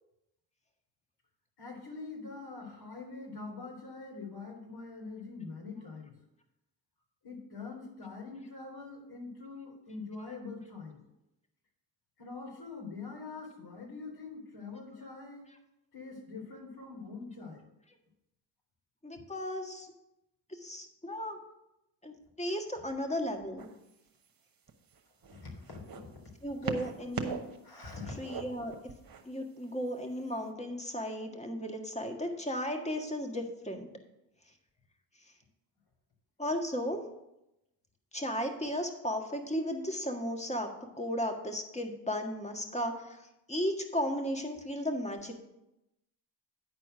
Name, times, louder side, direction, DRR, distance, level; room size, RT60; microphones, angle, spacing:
voice 1, 1.6-6.1 7.2-11.0 12.2-15.5 15.9-17.6 25.3-25.8 27.6-28.3, left 4 dB, 55° left, 0 dB, 3.5 m, -44 dB
voice 2, 19.0-19.9 20.5-21.4 22.0-23.7 26.4-27.4 28.2-28.7 29.2-33.9 36.4-37.0 38.1-40.7 41.0-43.2 43.5-45.3, equal, 15° left, 4 dB, 1.6 m, -35 dB
sound 1, 23.6-23.9 24.7-26.0 26.6-27.6 27.8-29.2 30.1-30.2, right 6 dB, 50° right, 1.2 m, -39 dB
9.7 x 4.5 x 6.6 m, 0.89 s
supercardioid pair, 55°, 46 cm